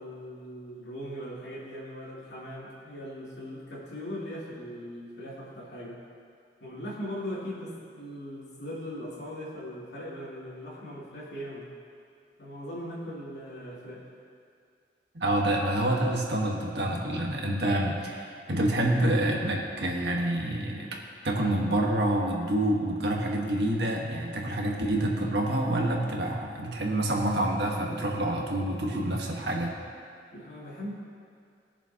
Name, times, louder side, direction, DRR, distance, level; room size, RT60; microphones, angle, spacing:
voice 1, 0.0-6.0 6.6-11.7 12.4-14.1 30.3-30.9, equal, 80° left, -7 dB, 2.9 m, -39 dB
voice 2, 15.1-21.0 21.2-29.7, right 1 dB, 75° right, -1 dB, 1.5 m, -27 dB
20.5 x 7.0 x 3.0 m, 2.3 s
head